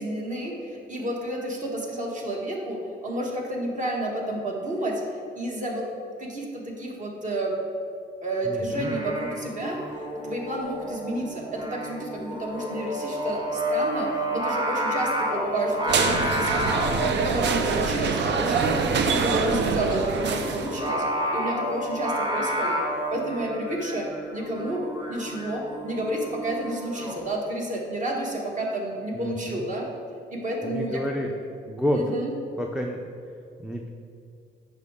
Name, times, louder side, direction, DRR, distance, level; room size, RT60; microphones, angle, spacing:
voice 1, 0.0-5.0 5.3-5.9 6.2-7.5 8.2-9.8 10.2-18.8 19.1-21.0 21.3-22.8 23.1-24.8 25.1-29.9 30.3-31.3 31.9-32.3, right 1 dB, 40° right, -1 dB, 1.5 m, -30 dB
voice 2, 8.5-9.0 29.1-29.6 30.6-31.3 31.7-32.0 32.6-33.0 33.6-33.9, equal, 5° right, 0 dB, 0.5 m, -29 dB
Singing, 8.7-27.2, equal, 25° right, 1.3 m, -31 dB
sound 1, 15.9-20.9, right 5 dB, 60° right, 0.6 m, -25 dB
8.0 x 5.5 x 3.6 m, 2.5 s
cardioid pair, 90°, 20 cm